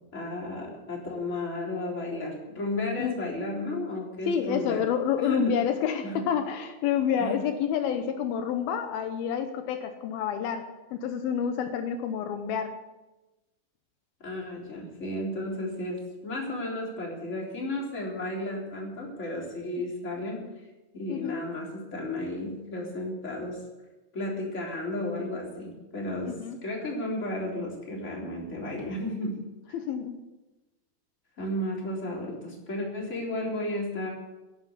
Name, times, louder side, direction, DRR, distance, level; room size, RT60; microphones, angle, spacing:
voice 1, 0.1-4.8 5.2-5.5 6.0-6.3 7.2-7.4 14.2-20.4 20.9-23.6 24.1-29.4 31.4-34.1, left 1 dB, 20° left, -2 dB, 3.6 m, -33 dB
voice 2, 4.3-12.7 21.1-21.4 26.3-26.6 29.7-30.2, left 8 dB, 80° left, 7 dB, 2.7 m, -29 dB
11.0 x 11.0 x 8.4 m, 1.1 s
omnidirectional pair, 4.4 m